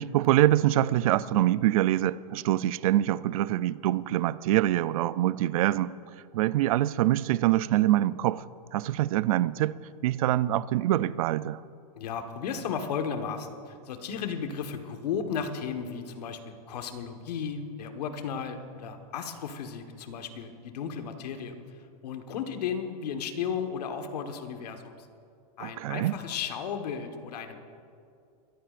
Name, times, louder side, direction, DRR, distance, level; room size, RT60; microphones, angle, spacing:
voice 1, 0.0-5.9 6.3-8.4 8.7-9.8 10.0-11.6 25.6-26.2, right 14 dB, 60° right, 0.4 m, -25 dB
voice 2, 11.9-25.1 25.6-27.6, left 7 dB, 75° left, 1.4 m, -34 dB
22.0 x 14.5 x 2.5 m
supercardioid pair, 160°, 20 cm